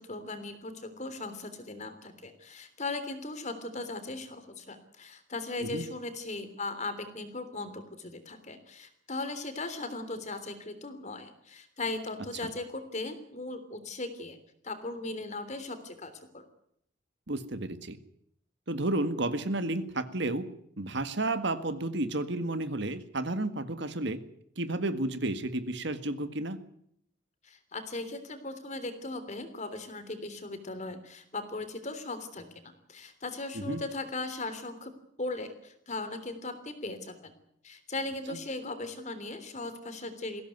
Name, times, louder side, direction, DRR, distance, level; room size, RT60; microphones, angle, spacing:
voice 1, 0.0-14.4 14.6-16.4 27.4-34.9 35.2-37.3 37.6-40.4, left 2 dB, 40° left, 9 dB, 3.4 m, -38 dB
voice 2, 17.3-18.0 18.7-20.5 20.8-24.2 24.6-26.6 33.5-33.8 38.3-38.4, right 2 dB, 65° right, 10 dB, 1.8 m, -32 dB
21.0 x 16.5 x 9.4 m, 0.70 s
head